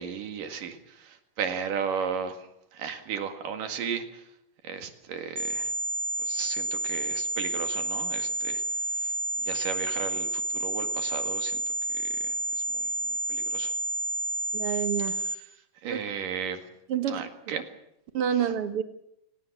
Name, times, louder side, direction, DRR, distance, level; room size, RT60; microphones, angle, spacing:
voice 1, 0.0-4.3 4.6-5.7 6.2-9.1 9.4-11.6 11.9-12.6 13.3-13.7 15.1-16.7 17.1-17.7 18.3-18.5, right 7 dB, 75° right, 7 dB, 3.6 m, -35 dB
sound 1, 5.4-15.4, right 2 dB, 25° right, 2.0 m, -30 dB
voice 2, 14.5-15.1 15.9-16.0 16.9-17.2 18.1-18.8, right 8 dB, 55° right, 9 dB, 1.9 m, -27 dB
29.0 x 18.5 x 7.4 m, 0.80 s
omnidirectional pair, 3.8 m